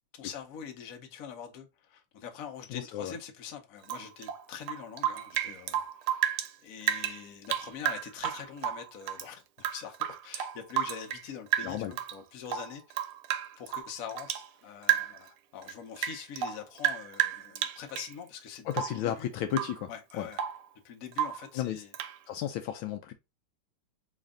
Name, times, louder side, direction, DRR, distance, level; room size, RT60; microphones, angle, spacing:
voice 1, 0.1-9.4 9.7-13.1 13.6-19.3 19.9-20.4 20.8-21.9, left 8 dB, 55° left, 1.0 m, -44 dB
voice 2, 2.7-3.1 11.6-11.9 18.7-19.9 20.2-20.3 21.6-21.8 22.3-23.1, left 10 dB, 75° left, 1.3 m, -33 dB
Rain / Drip, 3.8-6.5 6.8-9.3 9.6-11.3 11.5-12.2 12.5-14.5 14.8-15.3 15.6-18.1 18.7-19.1 19.5-19.8 20.1-20.7 21.1-21.5 21.9-22.2, right 11 dB, 80° right, 1.5 m, -32 dB
4.3 x 3.2 x 3.7 m
omnidirectional pair, 2.4 m